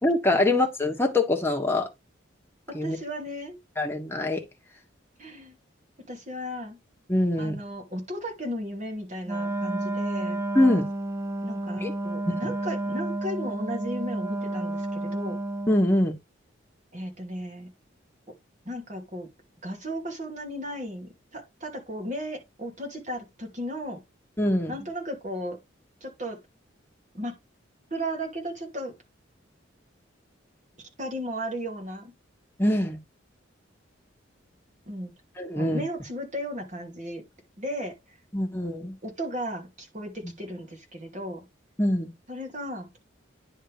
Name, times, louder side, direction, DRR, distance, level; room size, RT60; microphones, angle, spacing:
voice 1, 0.0-1.9 2.7-3.0 3.8-4.4 7.1-7.5 10.5-10.9 11.8-11.9 15.7-16.1 24.4-24.7 32.6-33.0 35.4-35.8 38.3-38.9 41.8-42.1, left 1 dB, 10° left, 1.5 m, -23 dB
voice 2, 2.7-3.6 5.2-5.5 6.1-6.8 7.4-10.4 11.4-15.4 16.9-17.7 18.6-19.3 19.6-24.0 24.7-25.6 26.0-26.4 27.1-27.3 27.9-28.9 31.0-32.1 34.9-35.1 35.5-37.2 37.6-37.9 39.0-41.4 42.3-42.9, equal, 40° right, 2.6 m, -35 dB
Wind instrument woodwind instrument, 9.2-15.9, right 2 dB, 15° right, 0.4 m, -31 dB
10.0 x 3.7 x 4.9 m
head